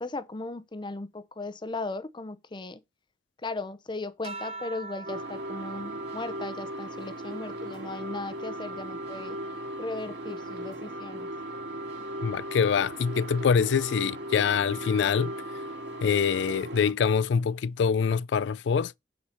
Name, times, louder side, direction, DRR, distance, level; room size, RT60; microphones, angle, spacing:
voice 1, 0.0-2.8 3.4-9.4 9.8-11.3, left 2 dB, 25° left, 0.6 m, -37 dB
sound 1, 4.2-9.0 9.5-11.2 12.4-12.9, right 3 dB, 35° right, 1.0 m, -46 dB
sound 2, 5.0-16.9, right 1 dB, 70° right, 2.5 m, -37 dB
voice 2, 12.2-15.3 16.0-18.9, left 6 dB, 85° left, 0.4 m, -25 dB
8.2 x 4.4 x 5.6 m
head